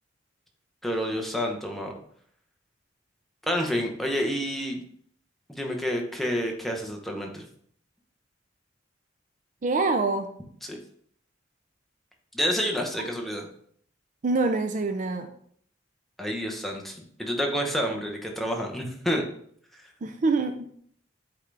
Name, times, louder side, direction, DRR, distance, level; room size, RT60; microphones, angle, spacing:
voice 1, 0.8-1.9 3.4-4.8 5.5-7.4 10.6-10.8 12.3-13.5 16.2-19.2, equal, ahead, 1 dB, 0.9 m, -29 dB
voice 2, 9.6-10.3 14.2-15.3 20.0-20.8, right 3 dB, 45° right, 6 dB, 0.5 m, -25 dB
8.5 x 3.8 x 3.3 m, 0.62 s
head